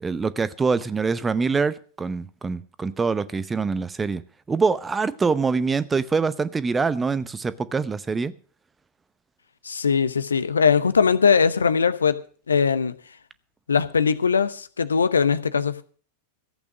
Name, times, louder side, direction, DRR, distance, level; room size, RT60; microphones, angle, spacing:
voice 1, 0.0-4.2 4.5-8.3, right 4 dB, 15° right, 0.7 m, -24 dB
voice 2, 9.6-12.9 13.7-15.8, left 6 dB, 75° left, 0.8 m, -21 dB
14.5 x 8.5 x 6.2 m
figure-of-eight pair, 90°, 0 cm